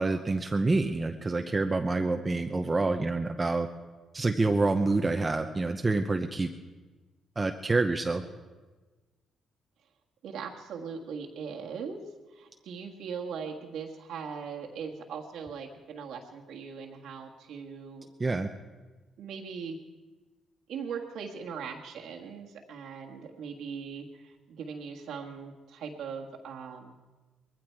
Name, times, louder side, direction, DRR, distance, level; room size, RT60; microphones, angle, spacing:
voice 1, 0.0-3.7 4.1-6.5 7.4-8.2 18.2-18.5, right 3 dB, 25° right, 6 dB, 0.8 m, -27 dB
voice 2, 10.2-12.0 12.3-18.1 19.2-19.8 20.7-26.9, right 6 dB, 80° right, 0 dB, 1.6 m, -40 dB
20.0 x 15.0 x 4.6 m, 1.3 s
cardioid pair, 90°, 0 cm